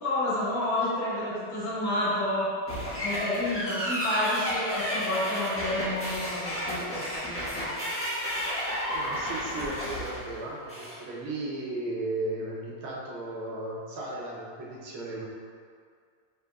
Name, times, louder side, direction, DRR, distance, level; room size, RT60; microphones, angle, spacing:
voice 1, 0.0-2.5 3.0-7.7, left 1 dB, 65° left, -10 dB, 2.0 m, -30 dB
sound 1, 2.7-11.0, equal, 20° left, 0.3 m, -32 dB
voice 2, 8.9-15.3, right 2 dB, 75° right, -4 dB, 1.6 m, -35 dB
5.2 x 3.9 x 2.2 m, 2.1 s
omnidirectional pair, 2.3 m